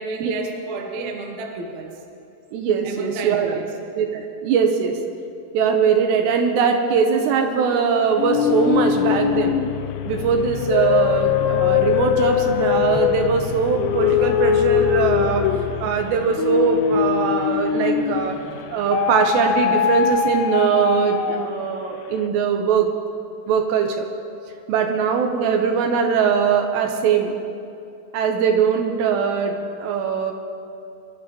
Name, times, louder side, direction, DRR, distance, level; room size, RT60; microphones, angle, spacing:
voice 1, 0.0-2.0 2.8-3.7, right 3 dB, 60° right, 1 dB, 1.9 m, -31 dB
voice 2, 2.5-3.6 4.0-5.0 5.5-9.6 10.1-15.5 15.8-18.4 18.7-22.9 23.5-24.1 24.7-27.4 28.1-30.3, right 6 dB, 80° right, 4 dB, 3.0 m, -21 dB
sound 1, 8.2-18.4 18.9-21.7, left 9 dB, 85° left, 2.8 m, -22 dB
sound 2, 11.8-18.7, left 2 dB, 45° left, 3.0 m, -40 dB
24.5 x 12.0 x 3.1 m, 2.7 s
omnidirectional pair, 5.1 m